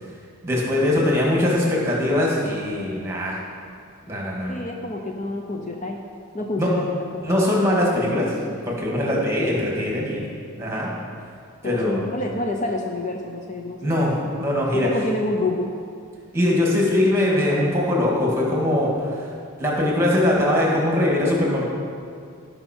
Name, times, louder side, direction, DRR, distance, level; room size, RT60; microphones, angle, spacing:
voice 1, 0.4-3.4 4.1-4.5 6.6-6.7 7.2-8.3 8.7-10.2 10.6-10.9 11.6-12.0 13.8-14.9 16.3-19.3 19.6-21.6, left 1 dB, 10° right, -3 dB, 2.0 m, -21 dB
voice 2, 4.5-6.0 6.3-6.9 7.4-7.6 11.6-14.0 14.7-15.7, left 2 dB, 35° left, 1 dB, 0.7 m, -28 dB
16.5 x 5.7 x 4.5 m, 2.3 s
head